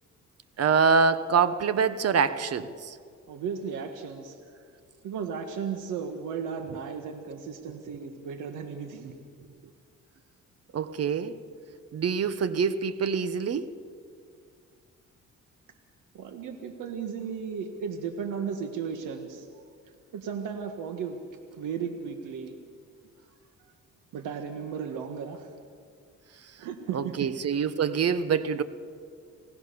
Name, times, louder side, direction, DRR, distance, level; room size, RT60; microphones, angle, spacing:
voice 1, 0.6-3.0 10.7-11.4 11.9-13.7 26.9-28.6, right 6 dB, 55° right, 13 dB, 1.3 m, -25 dB
voice 2, 3.3-4.4 5.0-9.1 16.1-19.5 20.1-21.2 21.6-22.5 24.1-25.5 26.6-27.3, right 6 dB, 85° right, 6 dB, 1.8 m, -35 dB
27.5 x 18.5 x 7.0 m, 2.2 s
cardioid pair, 90°, 30 cm